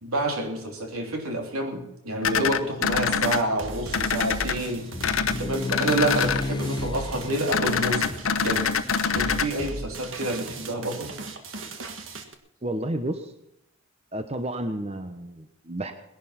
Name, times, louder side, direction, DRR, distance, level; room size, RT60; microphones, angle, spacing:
voice 1, 0.0-4.9 5.4-8.1 8.4-8.7 9.1-11.1, right 1 dB, 85° right, 3 dB, 3.2 m, -28 dB
sound 1, 2.2-3.4 3.9-4.5 5.0-5.4 5.7-6.4 7.5-9.5, left 6 dB, 70° left, 0.9 m, -25 dB
sound 2, 2.9-12.3, right 2 dB, 60° right, 1.7 m, -38 dB
sound 3, 3.5-11.0, left 2 dB, 20° left, 0.4 m, -36 dB
voice 2, 12.6-13.3 14.1-15.9, right 1 dB, 30° right, 8 dB, 1.0 m, -31 dB
19.0 x 11.0 x 5.8 m, 0.85 s
head